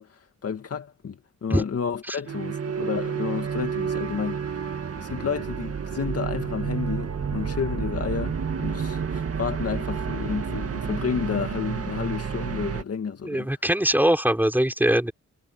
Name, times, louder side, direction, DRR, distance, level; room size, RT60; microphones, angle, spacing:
voice 1, 0.0-4.7 5.0-13.5, left 6 dB, 55° left, 2.1 m, -31 dB
sound 1, 2.3-12.8, right 6 dB, 55° right, 2.0 m, -30 dB
voice 2, 13.2-15.1, right 1 dB, 5° right, 4.1 m, -22 dB
wide cardioid pair, 130°, 29 cm